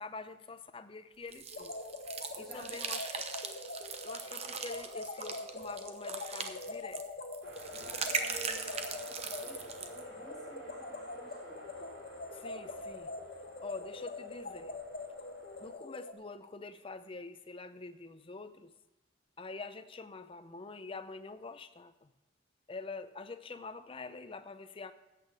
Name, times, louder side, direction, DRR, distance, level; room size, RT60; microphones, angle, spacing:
voice 1, 0.0-1.8 2.4-3.1 4.0-7.0 12.3-13.1 13.6-14.7 15.6-18.7 19.4-22.1 22.7-24.9, left 3 dB, 30° left, 11 dB, 0.5 m, -46 dB
sound 1, 1.3-10.0, right 5 dB, 35° right, 0.8 m, -40 dB
sound 2, 1.5-16.1, left 2 dB, 55° left, 1.0 m, -44 dB
voice 2, 2.4-2.8 4.4-4.5 7.7-11.7, equal, ahead, -11 dB, 3.3 m, -51 dB
sound 3, 7.4-15.7, equal, 75° right, 3.1 m, -53 dB
14.5 x 8.5 x 3.4 m, 1.1 s
head